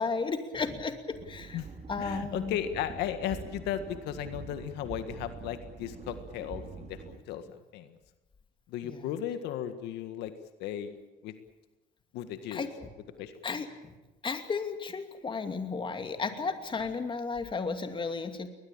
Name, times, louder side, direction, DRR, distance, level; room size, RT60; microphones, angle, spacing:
voice 1, 0.0-1.6 1.9-2.6 8.8-9.0 12.5-12.9 13.4-13.9 14.2-18.5, left 4 dB, 30° left, 7 dB, 2.6 m, -34 dB
sound 1, 1.1-7.2, right 5 dB, 40° right, 3.5 m, -45 dB
voice 2, 2.0-7.4 7.7-8.0 8.7-10.3 10.6-11.0 11.2-11.3 12.1-12.7 13.2-13.6, left 10 dB, 90° left, 9 dB, 1.8 m, -35 dB
21.0 x 21.0 x 8.8 m, 1.1 s
cardioid pair, 110°, 17 cm